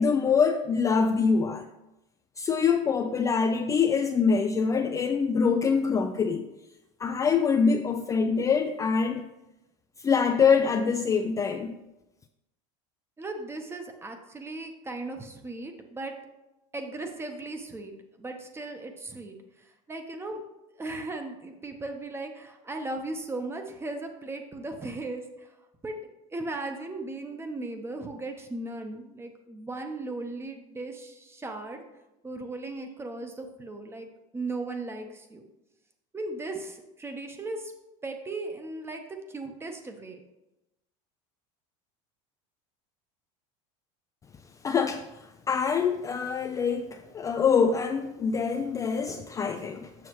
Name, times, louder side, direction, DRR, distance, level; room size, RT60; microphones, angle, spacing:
voice 1, 0.0-1.7 2.4-6.5 7.0-9.2 10.0-11.8 44.6-50.1, left 5 dB, 20° left, 0.3 m, -25 dB
voice 2, 13.2-16.1 16.7-17.9 18.2-19.4 19.9-20.4 20.8-25.2 25.8-25.9 26.3-31.8 32.2-34.1 34.3-35.4 36.1-37.7 38.0-40.2, right 2 dB, 15° right, 0.9 m, -37 dB
7.1 x 6.0 x 3.0 m
supercardioid pair, 115°, 16 cm